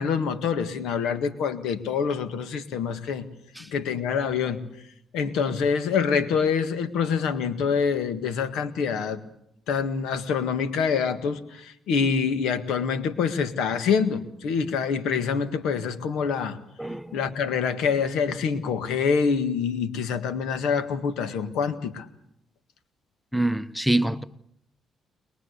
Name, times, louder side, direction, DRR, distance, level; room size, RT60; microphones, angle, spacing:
voice 1, 0.0-3.3 3.7-4.6 5.1-9.2 9.7-16.6 17.1-22.1, left 6 dB, 85° left, 1.8 m, -26 dB
voice 2, 16.8-17.2 23.3-24.2, right 1 dB, ahead, 0.9 m, -25 dB
22.5 x 21.5 x 8.2 m
cardioid pair, 90°, 0 cm